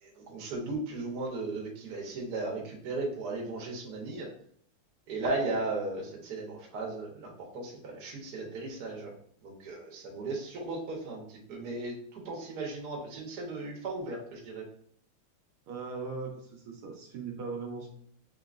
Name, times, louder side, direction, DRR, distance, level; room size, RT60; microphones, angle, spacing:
voice 1, 0.0-4.3 5.1-9.1 9.4-14.6, right 3 dB, 55° right, -1 dB, 1.4 m, -36 dB
voice 2, 15.7-17.9, right 4 dB, 80° right, 1 dB, 1.6 m, -39 dB
3.9 x 3.7 x 2.4 m, 0.62 s
omnidirectional pair, 2.4 m